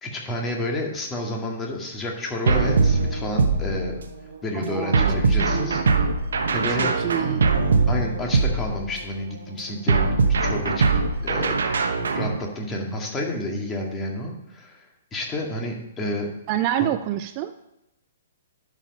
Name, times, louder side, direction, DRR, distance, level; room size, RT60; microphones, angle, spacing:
voice 1, 0.0-3.9 4.4-5.8 6.5-6.9 7.9-11.7 12.1-14.8 15.1-16.3, left 1 dB, 15° left, 0 dB, 2.1 m, -30 dB
sound 1, 2.5-4.2 4.9-9.1 9.9-12.4, right 4 dB, 65° right, 1.1 m, -22 dB
voice 2, 4.5-5.0 5.3-6.0 6.7-7.5 16.5-17.6, right 12 dB, 35° right, 10 dB, 0.5 m, -28 dB
11.0 x 5.0 x 5.6 m, 0.87 s
figure-of-eight pair, 120°, 0 cm